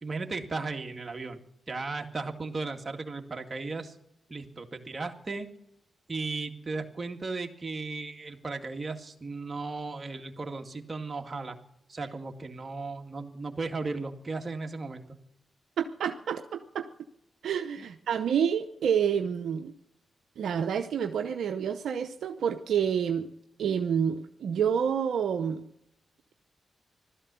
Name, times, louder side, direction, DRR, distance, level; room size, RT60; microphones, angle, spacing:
voice 1, 0.0-1.4 1.7-4.0 4.3-5.5 6.1-11.6 11.9-15.0 17.8-17.9, right 3 dB, 40° right, 4 dB, 2.1 m, -36 dB
voice 2, 15.8-16.9 17.4-19.7 20.4-23.3 23.6-25.6, right 7 dB, 80° right, 6 dB, 0.7 m, -28 dB
16.0 x 13.0 x 7.0 m, 0.79 s
supercardioid pair, 50°, 0 cm